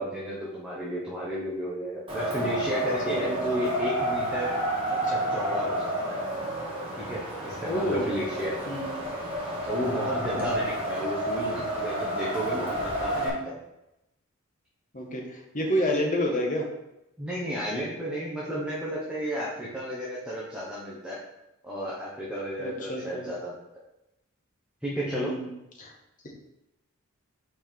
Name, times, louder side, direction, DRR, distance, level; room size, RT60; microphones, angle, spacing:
voice 1, 0.0-4.5 5.1-6.2 7.0-8.6 9.7-13.6 17.2-21.2 21.6-23.6 24.8-25.3, equal, 5° right, -7 dB, 1.2 m, -33 dB
Wind, 2.1-13.3, right 1 dB, 25° right, 1.8 m, -30 dB
voice 2, 3.1-3.6 5.0-5.1 7.7-8.1 8.7-8.9 10.3-10.6 13.1-13.4 14.9-16.7 22.6-23.3 25.1-25.5 25.8-25.9, equal, 40° left, 0 dB, 1.4 m, -29 dB
5.8 x 4.7 x 4.5 m, 0.90 s
head